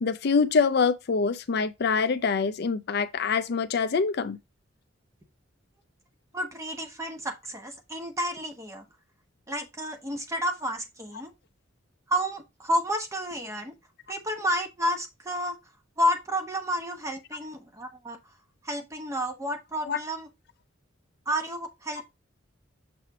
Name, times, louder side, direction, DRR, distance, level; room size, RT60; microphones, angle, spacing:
voice 1, 0.0-4.4 19.9-20.0, left 5 dB, 55° left, 0.4 m, -25 dB
voice 2, 6.3-8.8 9.5-11.3 12.1-13.8 14.1-15.6 16.0-18.2 18.6-20.3 21.3-22.0, equal, 15° right, 1.1 m, -30 dB
6.8 x 3.2 x 4.7 m
head